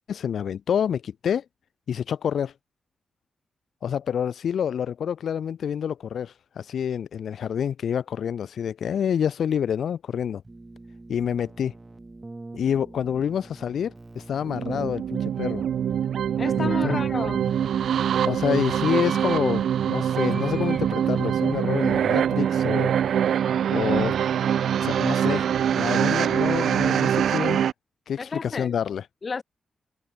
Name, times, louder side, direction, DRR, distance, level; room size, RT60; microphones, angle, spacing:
voice 1, 0.1-1.4 1.9-2.5 3.8-10.4 11.1-11.7 12.5-15.6 16.6-17.0 18.2-22.9 23.3-24.2 24.8-27.6 28.1-29.1, left 8 dB, 75° left, 0.9 m, -28 dB
Keyboard (musical), 10.4-18.0, right 2 dB, 20° right, 5.8 m, -43 dB
sound 1, 14.4-27.7, right 9 dB, 80° right, 0.8 m, -24 dB
sound 2, 16.1-24.6, left 1 dB, 10° left, 7.5 m, -51 dB
voice 2, 16.4-17.5 28.2-28.8 29.2-29.4, left 4 dB, 40° left, 4.8 m, -32 dB
cardioid pair, 80°, 0 cm